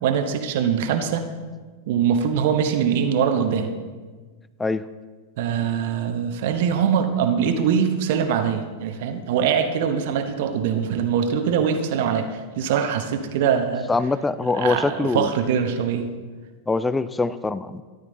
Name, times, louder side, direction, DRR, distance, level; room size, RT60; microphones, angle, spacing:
voice 1, 0.0-1.2 1.9-3.7 5.4-13.9 14.5-16.1, right 7 dB, 50° right, 8 dB, 1.0 m, -23 dB
voice 2, 13.9-15.3 16.7-17.8, left 3 dB, 10° left, 15 dB, 0.4 m, -23 dB
13.5 x 11.5 x 3.9 m, 1.4 s
figure-of-eight pair, 90°, 0 cm